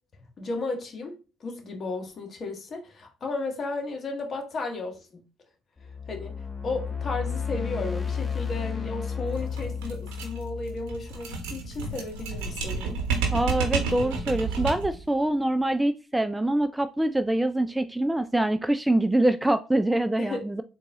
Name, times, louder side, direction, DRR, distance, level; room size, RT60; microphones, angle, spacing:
voice 1, 0.4-5.2 5.8-13.0 20.2-20.6, left 3 dB, 45° left, 1.4 m, -34 dB
sound 1, 5.8-12.0, left 6 dB, 20° left, 1.1 m, -33 dB
sound 2, 9.3-15.0, right 5 dB, 75° right, 1.1 m, -30 dB
voice 2, 13.3-20.6, right 1 dB, 10° right, 0.3 m, -25 dB
3.9 x 2.6 x 3.6 m
hypercardioid pair, 65°, 0 cm